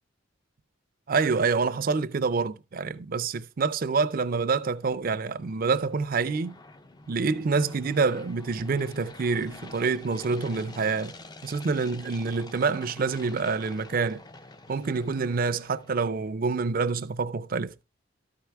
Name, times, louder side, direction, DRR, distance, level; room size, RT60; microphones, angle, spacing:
voice 1, 1.1-6.6 7.1-11.1 11.4-14.2 14.7-17.7, right 4 dB, 45° right, 0.4 m, -27 dB
sound 1, 4.1-16.2, left 2 dB, 20° left, 0.4 m, -48 dB
13.0 x 4.6 x 3.4 m
head